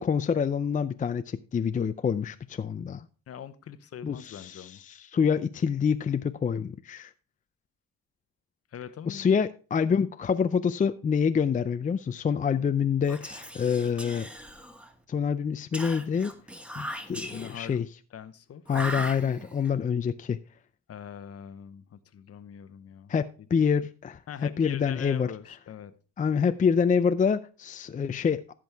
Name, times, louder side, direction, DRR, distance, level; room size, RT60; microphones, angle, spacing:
voice 1, 0.0-3.1 4.0-7.1 9.1-14.3 15.1-16.3 16.8-17.2 17.5-17.9 18.7-20.4 23.1-24.2 24.6-25.3 26.2-28.4, left 6 dB, 25° left, 0.4 m, -26 dB
voice 2, 3.3-4.8 8.7-9.3 17.1-17.7 18.1-18.6 20.9-23.1 23.5-23.6 24.3-25.9, left 8 dB, 50° left, 0.9 m, -42 dB
Whispering, 13.0-15.0 15.7-17.8 18.7-19.7, equal, 5° right, 1.4 m, -39 dB
15.5 x 6.2 x 3.5 m
cardioid pair, 90°, 30 cm